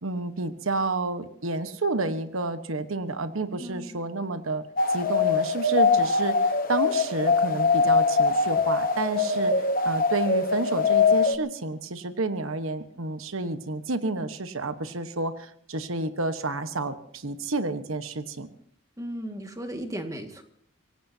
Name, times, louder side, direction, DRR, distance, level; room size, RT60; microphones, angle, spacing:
voice 1, 0.0-18.5, right 2 dB, 80° right, 10 dB, 1.3 m, -30 dB
voice 2, 3.6-4.0 19.0-20.4, right 1 dB, 15° right, 5 dB, 1.9 m, -36 dB
sound 1, 4.8-11.4, left 4 dB, 40° left, 1.1 m, -22 dB
25.5 x 18.0 x 2.8 m, 0.68 s
head